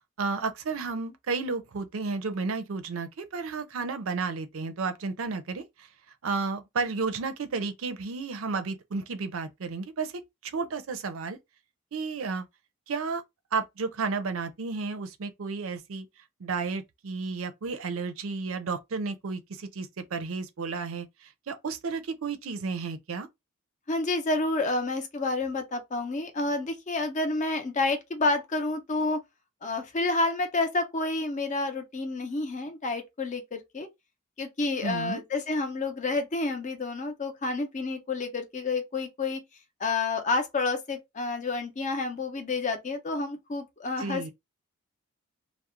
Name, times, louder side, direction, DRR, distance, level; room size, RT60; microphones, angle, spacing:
voice 1, 0.2-5.9 6.2-11.4 11.9-12.5 12.9-13.2 13.5-16.1 16.4-23.3 34.8-35.2 44.0-44.3, right 4 dB, 65° right, 0.5 m, -32 dB
voice 2, 23.9-29.2 29.6-33.9 34.4-39.4 39.8-44.3, left 3 dB, 35° left, 0.5 m, -29 dB
2.4 x 2.0 x 2.9 m
head